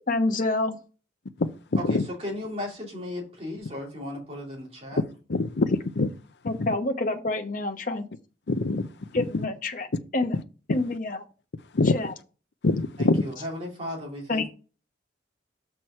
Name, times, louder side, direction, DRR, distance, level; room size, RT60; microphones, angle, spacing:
voice 1, 0.1-0.8 6.5-8.1 9.1-9.9 10.1-10.4 10.7-11.2 11.9-12.1 14.3-14.5, left 2 dB, 45° left, 1.1 m, -27 dB
voice 2, 1.4-2.0 5.3-6.1 6.6-6.7 8.5-8.9 9.1-9.2 11.7-12.0 12.6-13.2, left 3 dB, 60° left, 0.6 m, -24 dB
voice 3, 1.9-5.0 13.0-14.5, left 1 dB, 35° right, 2.7 m, -35 dB
6.2 x 4.6 x 5.6 m
head